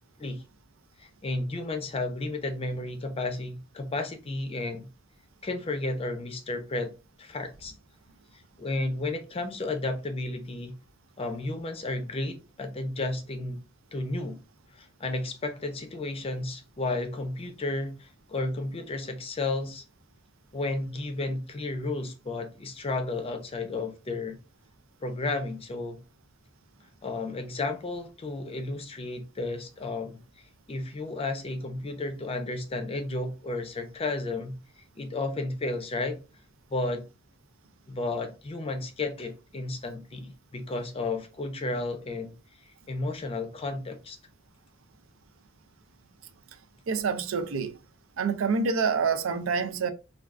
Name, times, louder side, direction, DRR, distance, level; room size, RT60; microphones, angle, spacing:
voice 1, 1.0-4.9 5.4-6.9 7.2-7.7 8.6-10.8 11.2-13.6 13.9-14.4 14.7-19.8 20.5-24.4 25.0-26.0 27.0-30.2 30.7-34.6 35.0-36.2 36.7-37.0 37.9-42.3 42.9-44.2, left 2 dB, 30° left, 0.5 m, -32 dB
voice 2, 46.9-47.7 48.2-49.9, right 5 dB, 75° right, 0.4 m, -27 dB
3.4 x 2.3 x 2.4 m
head